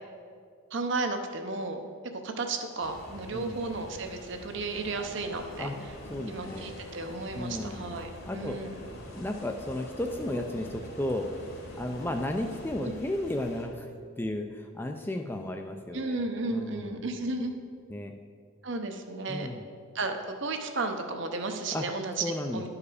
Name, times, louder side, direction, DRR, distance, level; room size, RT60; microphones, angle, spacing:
voice 1, 0.7-1.8 2.2-5.7 6.3-8.7 12.8-12.9 15.9-17.5 18.6-19.5 19.9-22.7, right 3 dB, 55° right, 5 dB, 0.7 m, -33 dB
sound 1, 2.8-13.7, left 1 dB, 45° left, 1.2 m, -47 dB
sound 2, 4.7-12.6, left 1 dB, 70° left, 1.8 m, -48 dB
voice 2, 6.1-6.7 7.3-7.8 8.2-8.6 9.1-11.3 11.8-13.9 14.2-16.2 16.5-17.0 17.9-18.1 19.3-19.6 21.7-21.8 22.2-22.7, left 1 dB, 10° left, 4 dB, 0.3 m, -33 dB
11.0 x 4.8 x 4.8 m, 2.2 s
head